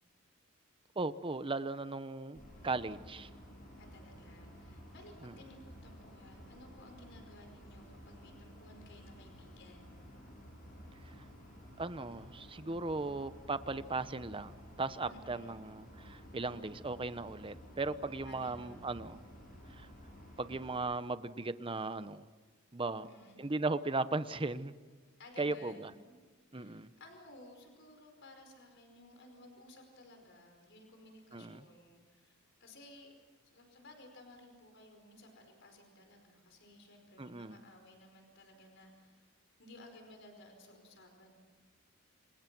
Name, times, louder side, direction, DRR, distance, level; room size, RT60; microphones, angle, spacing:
voice 1, 1.0-3.3 5.2-5.3 11.2-11.3 11.8-19.2 19.7-19.9 20.4-22.3 22.7-23.1 23.4-24.7 25.4-25.9 26.5-26.9 31.3-31.6 37.2-37.6, right 3 dB, 25° right, 13 dB, 0.9 m, -37 dB
sound 1, 2.3-20.8, equal, 40° left, 7.9 m, -53 dB
voice 2, 3.8-10.0 15.0-15.6 18.2-19.0 22.9-23.4 25.2-26.2 26.5-33.1 33.5-39.3 39.6-41.3, left 1 dB, 60° left, 4 dB, 5.0 m, -57 dB
28.0 x 27.0 x 6.2 m, 1.5 s
head